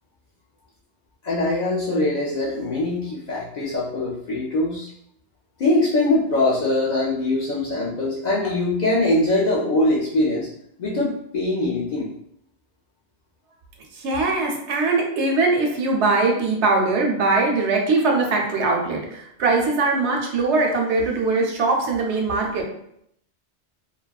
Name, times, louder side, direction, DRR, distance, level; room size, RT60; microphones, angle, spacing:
voice 1, 1.2-4.9 5.6-10.5 10.8-12.1, left 2 dB, 55° left, -6 dB, 0.5 m, -22 dB
voice 2, 13.9-22.6, right 3 dB, 90° right, 1 dB, 0.9 m, -21 dB
2.7 x 2.3 x 2.3 m, 0.74 s
omnidirectional pair, 1.1 m